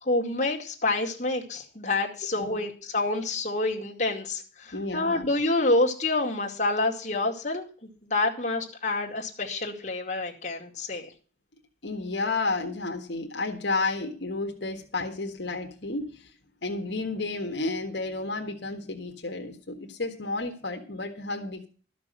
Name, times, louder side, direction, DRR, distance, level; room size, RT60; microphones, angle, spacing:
voice 1, 0.0-11.1, left 2 dB, 40° left, 0 dB, 2.2 m, -28 dB
voice 2, 4.7-5.3 11.8-16.3 16.6-21.7, left 3 dB, 70° left, 3 dB, 1.6 m, -31 dB
13.0 x 6.1 x 7.6 m, 0.39 s
head